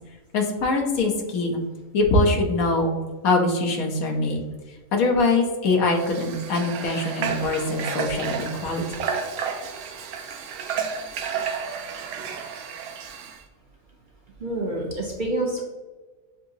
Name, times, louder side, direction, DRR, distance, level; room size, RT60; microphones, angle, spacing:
voice 1, 0.3-1.6 1.9-3.0 3.2-4.4 4.9-8.8, left 2 dB, 85° left, 2 dB, 1.3 m, -23 dB
Water / Water tap faucet, 5.9-13.4, right 6 dB, 85° right, 1.1 m, -32 dB
voice 2, 14.4-15.6, right 1 dB, 50° right, -2 dB, 0.6 m, -27 dB
6.8 x 2.8 x 2.6 m, 1.2 s
omnidirectional pair, 1.5 m